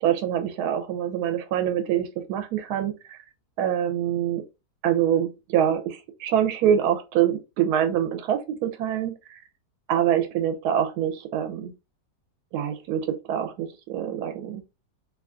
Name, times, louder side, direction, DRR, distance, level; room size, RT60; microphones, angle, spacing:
voice 1, 0.0-3.2 3.6-4.4 4.8-9.4 9.9-11.7 12.5-14.6, right 10 dB, 75° right, 1.1 m, -25 dB
2.8 x 2.3 x 3.6 m
omnidirectional pair, 1.8 m